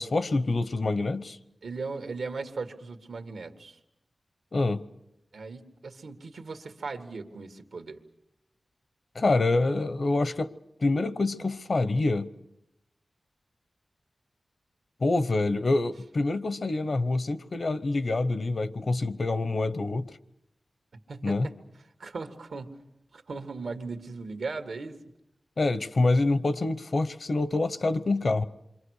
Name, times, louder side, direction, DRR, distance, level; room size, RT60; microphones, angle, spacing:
voice 1, 0.0-1.4 4.5-4.8 9.1-10.5 10.8-12.3 15.0-20.2 21.2-21.5 25.6-28.4, left 2 dB, 55° left, 0.9 m, -26 dB
voice 2, 1.6-3.8 5.3-8.0 21.1-21.6 22.0-22.8 23.1-25.0, right 4 dB, 90° right, 1.8 m, -38 dB
27.5 x 24.0 x 6.5 m
wide cardioid pair, 95°, 0 cm